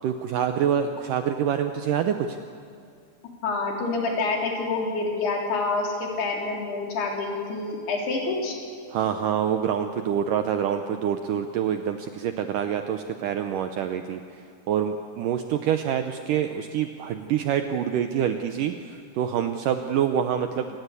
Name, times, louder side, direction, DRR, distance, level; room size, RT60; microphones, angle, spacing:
voice 1, 0.0-2.4 8.9-20.8, right 9 dB, 70° right, 7 dB, 2.1 m, -26 dB
voice 2, 3.4-8.5, left 3 dB, 85° left, 0 dB, 5.5 m, -27 dB
26.0 x 19.5 x 8.3 m, 2.3 s
omnidirectional pair, 4.5 m